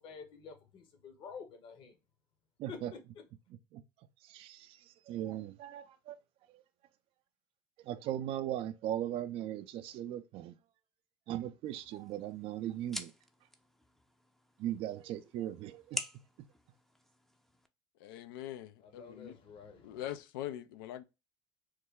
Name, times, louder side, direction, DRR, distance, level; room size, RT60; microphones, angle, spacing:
voice 1, 0.0-2.0 2.7-3.0 18.8-20.0, left 5 dB, 50° left, 0.9 m, -49 dB
voice 2, 2.6-2.9 3.7-3.8 4.2-6.2 6.5-6.6 7.8-10.6 11.3-13.1 14.6-16.0, right 12 dB, 55° right, 0.4 m, -38 dB
sound 1, 11.6-17.7, equal, 5° left, 0.4 m, -47 dB
voice 3, 18.0-19.4 19.8-21.0, left 12 dB, 85° left, 0.4 m, -42 dB
3.1 x 2.2 x 3.5 m
supercardioid pair, 95°, 11 cm